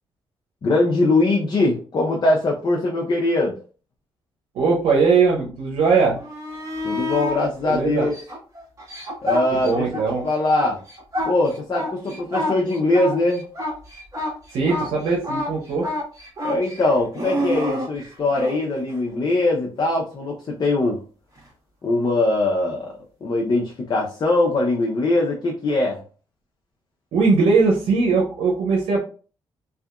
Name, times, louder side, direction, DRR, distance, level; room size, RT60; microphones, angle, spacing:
voice 1, 0.6-3.6 6.8-8.1 9.2-9.9 10.2-10.8 11.2-13.5 16.4-21.0 21.8-22.9 23.2-26.0, left 2 dB, 45° left, -1 dB, 0.6 m, -21 dB
voice 2, 4.5-6.2 7.6-8.1 9.5-10.2 14.5-15.9 27.1-29.0, right 4 dB, 90° right, -1 dB, 0.7 m, -20 dB
sound 1, 6.1-7.4 8.0-10.1 10.4-18.6 21.4-21.5, left 1 dB, 35° right, 1.4 m, -28 dB
2.7 x 2.4 x 2.4 m, 0.38 s
cardioid pair, 95°, 10 cm